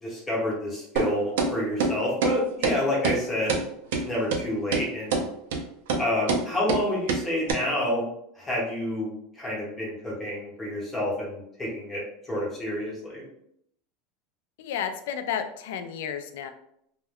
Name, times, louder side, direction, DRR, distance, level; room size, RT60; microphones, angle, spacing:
voice 1, 0.0-3.6 4.0-5.3 6.0-8.1 8.4-13.2, left 1 dB, 10° left, -4 dB, 0.8 m, -29 dB
sound 1, 1.0-1.1 1.4-1.5 1.8-1.9 2.2-2.3 2.6-2.8 3.0-3.2 3.5-3.6 3.9-4.0 4.3-4.4 4.7-4.8 5.1-5.2 5.5-5.6 5.9-6.0 6.3-6.4 6.7-6.8 7.1-7.2 7.5-7.6, right 4 dB, 85° right, 0.5 m, -24 dB
voice 2, 14.6-16.5, left 8 dB, 75° left, 8 dB, 0.3 m, -32 dB
2.2 x 2.2 x 3.4 m, 0.73 s
supercardioid pair, 170°, 0 cm